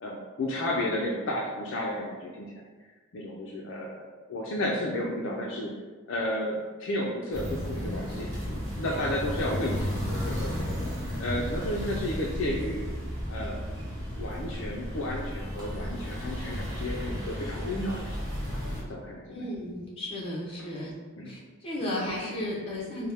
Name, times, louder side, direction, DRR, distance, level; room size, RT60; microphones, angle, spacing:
voice 1, 0.0-2.5 3.1-4.0 4.3-5.7 6.1-10.8 11.2-12.9 13.3-13.6 14.2-18.2 18.5-18.6 18.9-19.7 20.7-20.8 21.2-21.3, left 1 dB, 55° left, -2 dB, 0.4 m, -32 dB
sound 1, 7.3-18.8, equal, 20° right, 1.1 m, -34 dB
voice 2, 19.3-20.9 21.2-23.1, left 1 dB, 25° left, -5 dB, 0.8 m, -34 dB
4.1 x 2.1 x 3.3 m, 1.3 s
head